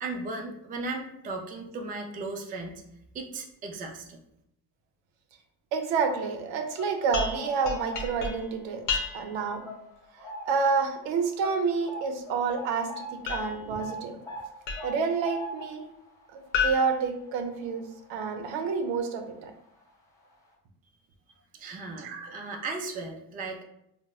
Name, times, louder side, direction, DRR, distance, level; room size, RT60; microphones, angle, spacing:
voice 1, 0.0-2.8 3.1-4.2 21.6-23.6, right 3 dB, 20° right, 3 dB, 0.3 m, -36 dB
voice 2, 5.7-8.8 9.1-9.6 10.5-14.2 14.8-15.9 16.3-17.8 18.1-19.5 22.0-22.3, right 5 dB, 85° right, 5 dB, 0.6 m, -29 dB
sound 1, 6.5-8.5 8.9-9.1 9.6-10.7 11.0-11.1 11.4-18.4 18.7-18.9 19.8-19.9 20.2-20.3, left 1 dB, 5° left, 0.7 m, -42 dB
sound 2, 7.1-9.5 13.3-15.1 16.5-18.0, left 5 dB, 75° left, 0.7 m, -33 dB
4.1 x 2.0 x 2.3 m, 0.79 s
cardioid pair, 115°, 43 cm